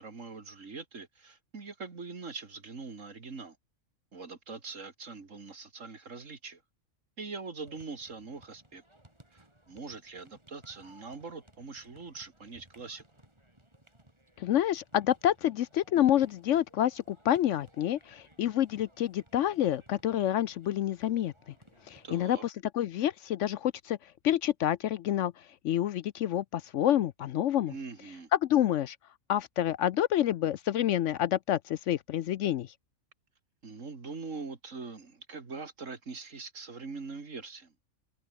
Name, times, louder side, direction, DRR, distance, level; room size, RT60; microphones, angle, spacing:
voice 1, 0.0-3.6 4.1-6.6 7.2-8.8 9.3-13.0 22.0-22.4 27.7-28.3 33.6-37.7, right 4 dB, 65° right, 2.8 m, -43 dB
sound 1, 7.6-22.3, right 1 dB, 20° right, 4.8 m, -61 dB
voice 2, 14.4-21.3 21.9-24.0 24.2-25.3 25.6-27.7 28.3-29.0 29.3-32.7, left 11 dB, 65° left, 0.9 m, -28 dB
omnidirectional pair, 1.5 m